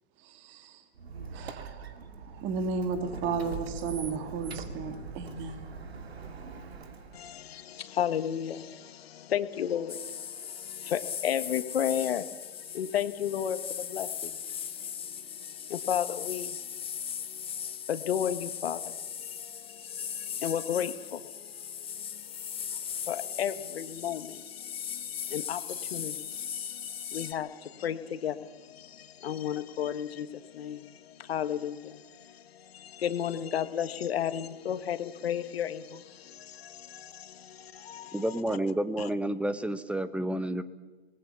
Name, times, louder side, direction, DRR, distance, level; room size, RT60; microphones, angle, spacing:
voice 1, 0.2-0.8 1.3-2.0 2.3-5.6, right 4 dB, 35° right, 7 dB, 2.9 m, -34 dB
Squeak, 1.0-7.4, right 5 dB, 75° right, 2.6 m, -42 dB
voice 2, 7.1-38.4 39.0-39.1, left 9 dB, 70° left, 11 dB, 1.7 m, -34 dB
sound 1, 9.9-27.3, left 8 dB, 15° left, 1.5 m, -38 dB
voice 3, 38.1-40.6, right 1 dB, 5° right, 13 dB, 1.1 m, -30 dB
28.0 x 20.0 x 7.1 m, 1.3 s
hypercardioid pair, 115°, 31 cm